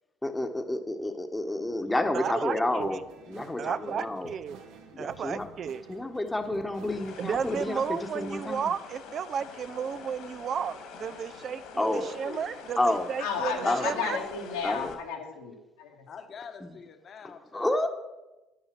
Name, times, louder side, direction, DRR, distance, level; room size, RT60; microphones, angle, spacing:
voice 1, 0.2-3.0 3.3-4.3 4.9-5.5 5.9-8.7 11.8-12.1 12.8-13.1 13.6-13.9 14.6-15.0 17.5-17.9, left 1 dB, 10° left, 6 dB, 1.2 m, -29 dB
voice 2, 2.1-3.0 3.6-4.6 5.0-5.8 7.2-14.2, right 7 dB, 50° right, 14 dB, 0.6 m, -33 dB
sound 1, 2.8-7.9, right 6 dB, 80° right, 1.7 m, -52 dB
sound 2, 6.9-14.9, left 5 dB, 70° left, 2.6 m, -46 dB
voice 3, 11.8-12.6 13.6-14.2 16.1-17.8, left 5 dB, 45° left, 7 dB, 1.3 m, -45 dB
voice 4, 13.2-16.1, left 6 dB, 90° left, -1 dB, 2.6 m, -33 dB
9.9 x 9.3 x 6.0 m, 1.0 s
supercardioid pair, 80°, 0 cm